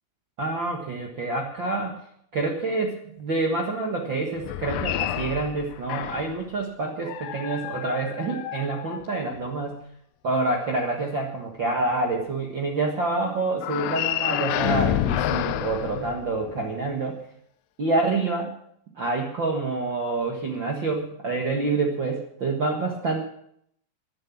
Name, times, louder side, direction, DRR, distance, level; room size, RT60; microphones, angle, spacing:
voice 1, 0.4-2.0 2.3-9.8 10.2-17.2 17.8-18.5 19.0-23.2, right 3 dB, 75° right, 0 dB, 1.0 m, -27 dB
sound 1, 4.4-6.4 7.0-9.5 13.6-16.7, left 12 dB, 90° left, 1.9 m, -29 dB
13.5 x 11.0 x 7.3 m, 0.70 s
omnidirectional pair, 4.9 m